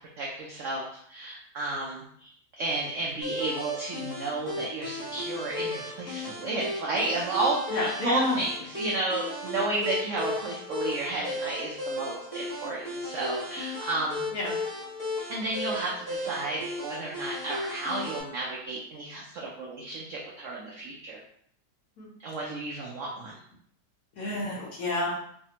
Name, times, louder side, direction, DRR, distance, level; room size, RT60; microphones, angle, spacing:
voice 1, 0.2-2.3 2.6-14.5 15.3-21.2 22.2-23.3, right 2 dB, 80° right, -3 dB, 0.6 m, -32 dB
sound 1, 3.2-18.2, left 2 dB, 20° left, 0.5 m, -35 dB
voice 2, 7.7-8.4 14.3-14.5 22.0-22.1 24.2-25.2, left 1 dB, 60° left, -4 dB, 1.1 m, -29 dB
3.3 x 2.1 x 2.8 m, 0.67 s
omnidirectional pair, 1.9 m